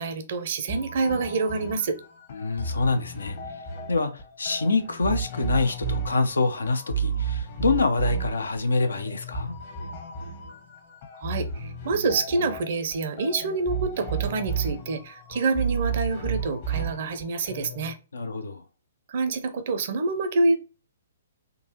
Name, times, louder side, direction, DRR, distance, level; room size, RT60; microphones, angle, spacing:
voice 1, 0.0-2.0 11.2-18.0 19.1-20.6, right 3 dB, 55° right, 0.6 m, -27 dB
sound 1, 0.7-18.0, right 5 dB, 50° left, 1.1 m, -33 dB
voice 2, 2.3-3.4 3.9-9.5 18.1-18.6, left 3 dB, 75° left, 0.6 m, -26 dB
3.8 x 2.6 x 2.9 m
figure-of-eight pair, 125°, 0 cm